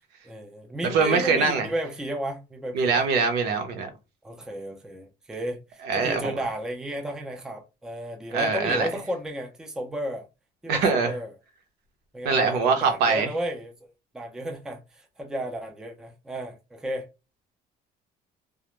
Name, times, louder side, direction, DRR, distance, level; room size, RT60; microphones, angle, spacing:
voice 1, 0.2-3.0 4.2-10.2 10.6-11.3 12.1-17.1, right 1 dB, 5° right, 0.4 m, -33 dB
voice 2, 0.9-1.7 2.7-3.9 5.8-6.3 8.3-8.9 10.7-11.1 12.2-13.3, right 4 dB, 75° right, 0.8 m, -23 dB
2.3 x 2.0 x 2.9 m
cardioid pair, 160°, 17 cm